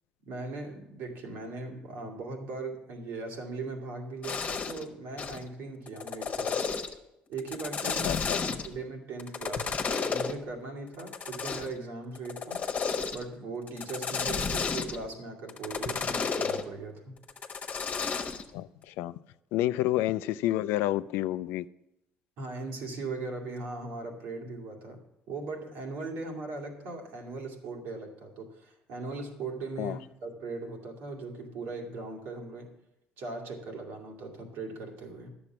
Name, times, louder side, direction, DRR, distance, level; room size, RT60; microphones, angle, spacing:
voice 1, 0.3-6.6 7.3-8.1 8.4-12.7 13.1-17.2 22.4-32.7 33.2-35.3, right 3 dB, 75° right, 1 dB, 2.1 m, -39 dB
sound 1, 4.2-4.8 5.2-5.4 5.9-7.0 7.4-8.8 9.2-10.3 11.0-11.8 12.2-13.3 13.7-15.1 15.5-16.6 17.3-18.5, left 5 dB, 40° left, 1.1 m, -32 dB
voice 2, 8.0-8.4 18.5-19.1 19.5-21.7 29.8-30.0, left 15 dB, 75° left, 16 dB, 0.3 m, -29 dB
10.5 x 7.0 x 5.8 m, 0.87 s
supercardioid pair, 75°, 4 cm